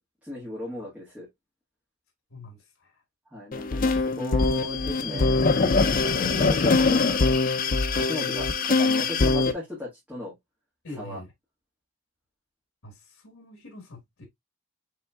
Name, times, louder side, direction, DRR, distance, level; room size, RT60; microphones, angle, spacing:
voice 1, 0.2-1.3 3.3-5.4 5.7-7.5 7.9-10.3 11.0-11.2, left 1 dB, 5° right, 1.7 m, -36 dB
voice 2, 2.3-2.9 5.0-5.3 10.8-11.3 12.8-14.3, left 2 dB, 80° left, 1.4 m, -43 dB
sound 1, 3.5-9.5, left 3 dB, 45° left, 0.5 m, -23 dB
5.6 x 3.6 x 2.3 m
head